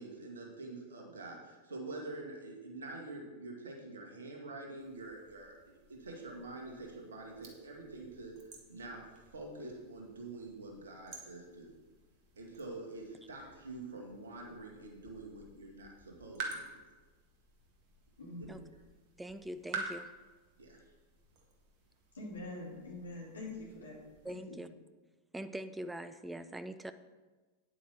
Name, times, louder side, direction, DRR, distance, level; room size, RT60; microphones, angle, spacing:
voice 1, 0.0-8.3 8.7-9.0 9.3-11.7 12.4-16.8 18.3-18.6 20.6-20.8, right 2 dB, 70° right, 0 dB, 2.1 m, -46 dB
sound 1, 4.8-24.3, right 4 dB, 45° right, 1.8 m, -50 dB
voice 2, 18.2-18.5 22.1-24.0 24.2-24.6, left 2 dB, 70° left, -3 dB, 2.9 m, -45 dB
voice 3, 19.2-20.1 24.2-24.7 25.3-26.9, right 1 dB, 5° right, 11 dB, 0.5 m, -43 dB
9.5 x 8.2 x 4.4 m, 1.3 s
figure-of-eight pair, 90°, 0 cm